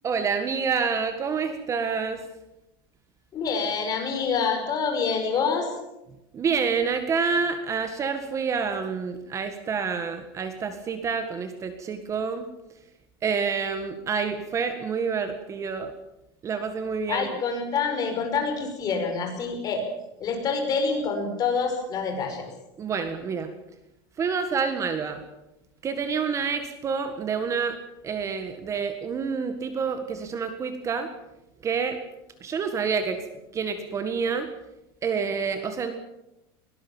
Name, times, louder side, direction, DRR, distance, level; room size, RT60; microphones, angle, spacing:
voice 1, 0.0-2.2 6.3-12.5 13.2-15.9 16.4-17.4 22.8-23.5 24.2-25.2 25.8-27.8 28.0-31.1 31.6-32.0 32.4-33.2 33.5-34.5 35.0-35.9, right 5 dB, 25° right, 8 dB, 1.7 m, -28 dB
voice 2, 3.3-5.7 17.1-19.9 20.2-22.5, left 5 dB, 30° left, 4 dB, 5.5 m, -26 dB
22.5 x 18.5 x 7.2 m, 0.93 s
supercardioid pair, 145°, 13 cm